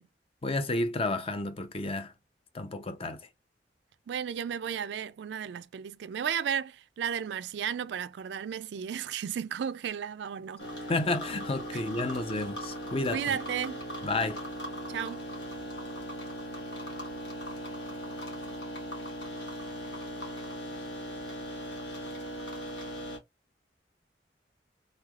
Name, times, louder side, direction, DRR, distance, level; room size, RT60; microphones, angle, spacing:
voice 1, 0.4-2.1 2.5-3.3 10.9-13.2 14.0-14.4, left 2 dB, 35° left, 0.6 m, -31 dB
voice 2, 4.1-10.7 11.7-11.8 13.1-13.8 14.9-15.2, right 8 dB, 80° right, 0.3 m, -34 dB
sound 1, 10.6-23.2, equal, 90° left, 1.7 m, -39 dB
3.8 x 3.2 x 2.3 m
head